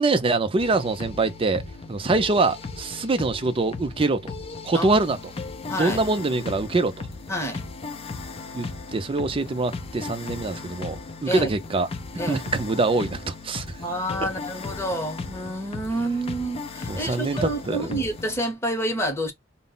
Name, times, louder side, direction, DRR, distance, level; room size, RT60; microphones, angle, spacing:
voice 1, 0.0-1.6 1.9-4.3 4.6-5.2 5.7-7.1 8.5-11.9 12.3-13.8 16.9-18.0, right 3 dB, 30° right, 0.4 m, -24 dB
sound 1, 0.6-18.4, left 3 dB, 30° left, 0.4 m, -37 dB
voice 2, 5.7-6.0 7.3-7.6 11.3-11.5 12.2-12.4 13.8-19.3, right 1 dB, 15° left, 0.8 m, -28 dB
2.0 x 2.0 x 3.7 m
head